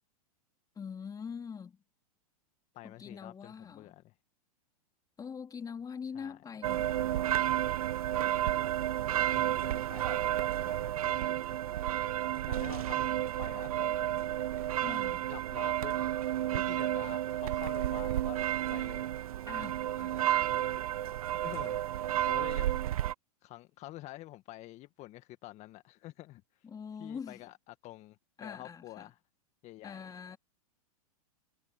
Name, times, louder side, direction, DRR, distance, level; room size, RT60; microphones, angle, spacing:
voice 1, 0.8-1.8 2.8-3.9 5.2-7.4 14.8-15.2 19.5-20.3 22.1-22.3 26.6-27.4 28.4-29.1 29.8-30.4, left 6 dB, 20° left, 3.6 m, -44 dB
voice 2, 2.7-4.1 6.1-6.4 9.3-11.8 12.4-14.6 14.8-15.0 15.3-16.1 16.5-18.4 18.7-19.2 21.4-21.9 22.3-23.0 23.4-26.7 27.0-29.2 29.6-30.0 30.3-30.4, left 17 dB, 35° left, 1.6 m, -48 dB
sound 1, 6.6-23.1, right 12 dB, 70° right, 0.6 m, -31 dB
hypercardioid pair, 105°, 19 cm